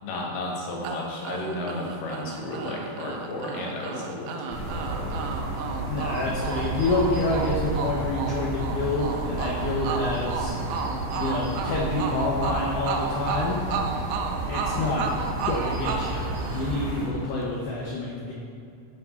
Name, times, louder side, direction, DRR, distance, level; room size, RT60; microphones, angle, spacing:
voice 1, 0.0-5.3, left 2 dB, 90° left, -2 dB, 3.9 m, -33 dB
sound 1, 0.8-17.0, right 5 dB, 80° right, 2.3 m, -33 dB
sound 2, 4.5-17.1, right 2 dB, 55° right, 4.0 m, -32 dB
voice 2, 5.8-10.5 11.2-13.6 14.5-15.0 15.5-16.3 16.5-18.3, left 2 dB, 70° left, -3 dB, 2.0 m, -27 dB
11.0 x 6.0 x 5.6 m, 2.5 s
omnidirectional pair, 5.0 m